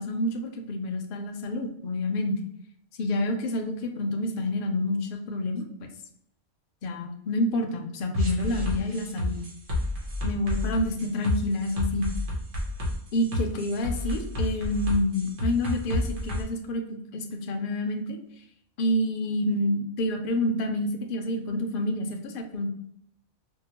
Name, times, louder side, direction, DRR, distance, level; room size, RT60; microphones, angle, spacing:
voice 1, 0.0-2.4 3.0-5.6 6.8-9.4 10.2-12.1 13.1-16.8 17.1-18.2 18.8-22.7, left 1 dB, 55° left, 4 dB, 0.7 m, -28 dB
sound 1, 8.1-16.4, left 1 dB, 85° right, 1.4 m, -30 dB
4.6 x 2.0 x 2.8 m, 0.72 s
omnidirectional pair, 1.2 m